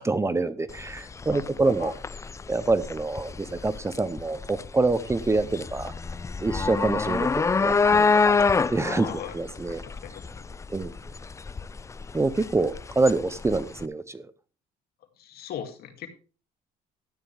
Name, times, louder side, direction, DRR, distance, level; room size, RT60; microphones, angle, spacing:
voice 1, 0.0-1.9 2.5-5.9 6.4-9.1 9.3-9.8 10.7-10.9 12.1-14.3, right 3 dB, 15° right, 0.7 m, -26 dB
sound 1, 0.7-13.8, left 4 dB, 20° left, 0.4 m, -27 dB
voice 2, 1.3-2.0 8.8-9.3 9.9-10.5 15.2-16.1, left 9 dB, 65° left, 2.4 m, -39 dB
13.0 x 9.6 x 3.5 m
cardioid pair, 110°, 17 cm